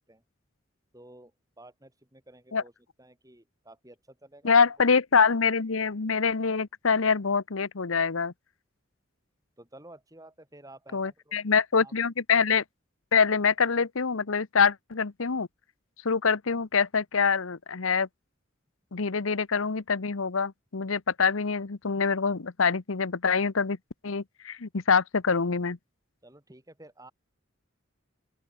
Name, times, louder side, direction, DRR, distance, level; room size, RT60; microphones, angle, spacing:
voice 1, 0.9-1.3 1.6-2.7 3.0-4.6 9.6-11.4 11.8-11.9 26.2-27.1, right 1 dB, 15° right, 7.5 m, -51 dB
voice 2, 4.4-8.3 10.9-12.6 13.1-15.5 16.0-18.1 18.9-23.8 24.0-25.8, left 5 dB, 90° left, 0.9 m, -25 dB
open air
head